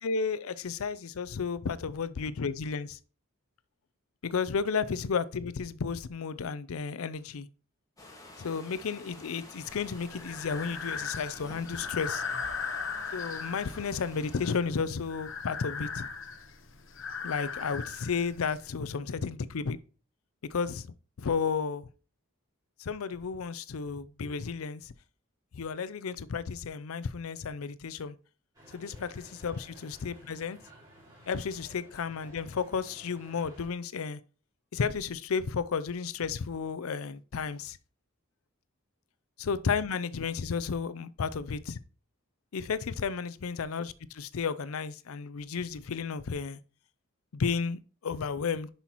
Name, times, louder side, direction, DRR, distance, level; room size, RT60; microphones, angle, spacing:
voice 1, 0.0-3.0 4.2-7.5 8.4-12.2 13.1-16.1 17.2-19.8 20.4-21.9 22.8-24.9 25.5-28.2 28.7-30.6 31.3-34.2 34.7-37.8 39.4-41.8 42.5-46.6 47.3-48.7, left 5 dB, 80° left, 0.5 m, -33 dB
sound 1, 8.0-14.6, left 1 dB, 15° left, 1.7 m, -50 dB
Breathing, 9.7-18.7, left 5 dB, 60° left, 0.9 m, -38 dB
sound 2, 28.5-33.7, equal, 20° right, 4.3 m, -54 dB
10.0 x 5.5 x 3.0 m
head